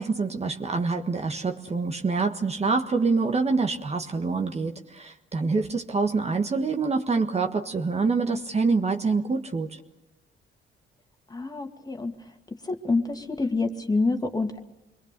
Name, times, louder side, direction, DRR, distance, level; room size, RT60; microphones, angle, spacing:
voice 1, 0.0-9.8, right 4 dB, 30° right, 4 dB, 1.5 m, -26 dB
voice 2, 11.3-12.1 12.8-14.6, left 3 dB, 20° left, 5 dB, 2.1 m, -26 dB
27.5 x 22.0 x 6.8 m, 0.94 s
cardioid pair, 90°, 20 cm